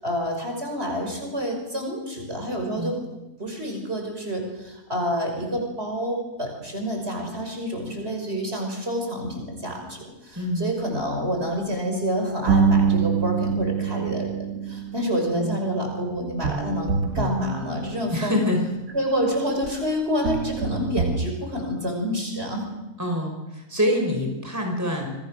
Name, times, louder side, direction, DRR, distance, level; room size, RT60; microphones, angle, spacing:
voice 1, 0.0-2.9 3.4-18.4 18.9-22.6, equal, 45° right, 2 dB, 5.9 m, -28 dB
voice 2, 10.4-10.7 15.3-15.6 18.1-18.7 23.0-25.1, equal, 10° right, 2 dB, 5.2 m, -25 dB
sound 1, 12.5-18.4 19.6-19.8 20.2-21.3, right 6 dB, 70° right, 1.9 m, -26 dB
27.5 x 24.5 x 6.5 m, 0.96 s
omnidirectional pair, 1.5 m